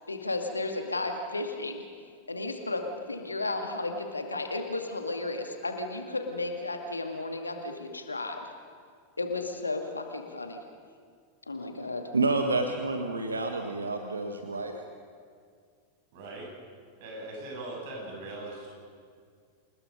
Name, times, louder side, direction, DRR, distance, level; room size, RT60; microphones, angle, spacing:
voice 1, 0.1-1.9 2.3-2.8 3.1-8.4 9.2-10.6 11.5-12.1, left 2 dB, 80° left, 5 dB, 2.2 m, -33 dB
voice 2, 12.1-14.8, right 3 dB, 75° right, 5 dB, 1.5 m, -29 dB
voice 3, 16.1-16.5 17.0-18.7, right 2 dB, 50° right, -1 dB, 8.0 m, -40 dB
28.5 x 20.0 x 5.3 m, 2.1 s
figure-of-eight pair, 90°, 0 cm